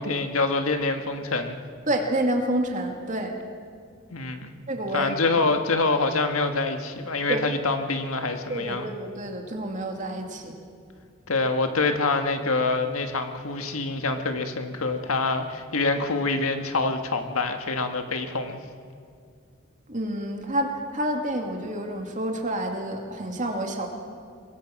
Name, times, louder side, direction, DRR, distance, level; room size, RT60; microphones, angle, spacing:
voice 1, 0.0-1.6 4.1-4.5 4.9-8.9 11.3-18.6, left 3 dB, 85° left, 6 dB, 1.7 m, -26 dB
voice 2, 1.9-3.3 4.7-5.1 7.3-7.4 8.5-10.6 19.9-23.9, right 1 dB, 35° right, 2 dB, 2.5 m, -28 dB
24.0 x 21.5 x 6.0 m, 2.2 s
head